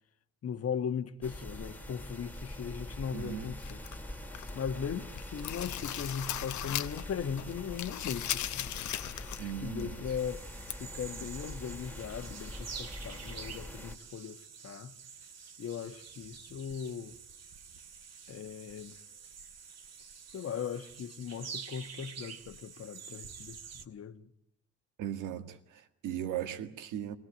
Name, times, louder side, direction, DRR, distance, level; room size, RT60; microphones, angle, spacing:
voice 1, 0.4-3.8 4.5-8.7 9.4-10.5 10.8-15.0 15.6-17.2 18.3-19.0 20.3-24.3, left 7 dB, 50° left, 1.4 m, -38 dB
sound 1, 1.2-14.0, left 1 dB, 5° left, 2.4 m, -44 dB
voice 2, 3.1-3.6 9.4-10.2 25.0-27.2, right 10 dB, 85° right, 1.9 m, -38 dB
sound 2, 3.6-4.7 5.0-7.1 7.4-9.5 9.8-9.9 10.7-10.8, left 12 dB, 70° left, 1.1 m, -38 dB
sound 3, 10.2-23.9, right 6 dB, 60° right, 2.3 m, -48 dB
23.5 x 18.0 x 8.8 m
cardioid pair, 90°, 30 cm